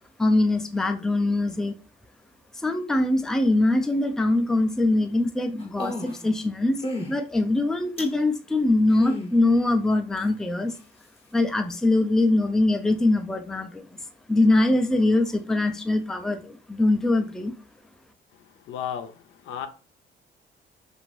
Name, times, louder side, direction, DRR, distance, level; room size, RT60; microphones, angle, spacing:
voice 1, 0.2-1.7 2.5-6.8 7.1-10.8 11.3-13.8 14.3-17.5, left 2 dB, 5° left, 6 dB, 0.4 m, -22 dB
sound 1, 5.6-6.3 6.8-7.1 8.0-8.2 8.9-9.3 10.2-10.3, left 2 dB, 30° left, 0.8 m, -32 dB
voice 2, 18.7-19.1 19.5-19.7, left 9 dB, 80° left, 7 dB, 0.5 m, -32 dB
2.6 x 2.5 x 3.1 m, 0.36 s
cardioid pair, 90°, 20 cm